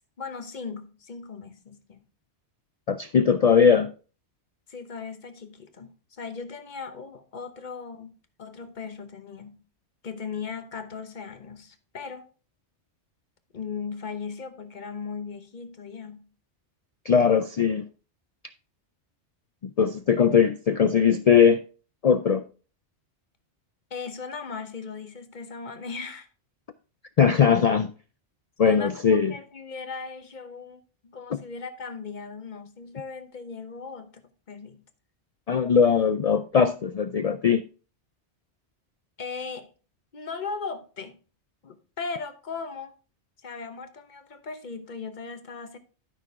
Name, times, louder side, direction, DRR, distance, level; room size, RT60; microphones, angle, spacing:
voice 1, 0.2-2.0 4.7-8.1 8.4-9.6 10.0-12.3 13.5-16.3 23.9-26.3 28.6-34.8 39.2-39.7 40.1-41.2 41.6-43.0 43.4-45.8, left 5 dB, 45° left, 1.1 m, -38 dB
voice 2, 2.9-3.9 17.1-17.9 19.6-21.6 22.0-22.4 27.2-27.9 28.6-29.3 35.5-37.6, left 6 dB, 75° left, 0.3 m, -20 dB
12.0 x 6.0 x 3.5 m
omnidirectional pair, 1.2 m